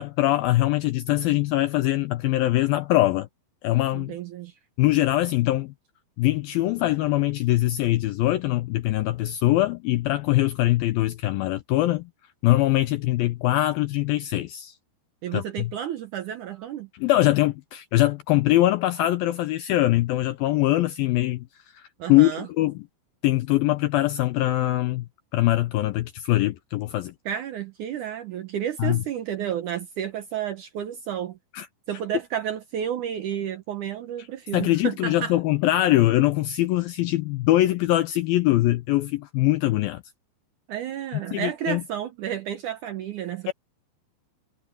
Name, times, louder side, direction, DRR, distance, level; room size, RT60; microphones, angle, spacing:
voice 1, 0.0-3.3 3.6-4.2 4.8-5.7 6.2-12.1 12.4-14.8 15.3-15.7 17.0-21.5 21.7-22.7 23.2-25.1 25.3-27.1 28.8-29.0 31.5-31.7 34.5-40.0 41.3-41.8 43.5-43.6, left 16 dB, 85° left, 2.1 m, -22 dB
voice 2, 3.9-4.5 15.2-16.9 22.0-22.5 27.3-31.4 31.9-35.4 40.7-43.5, right 10 dB, 80° right, 1.8 m, -31 dB
omnidirectional pair, 5.0 m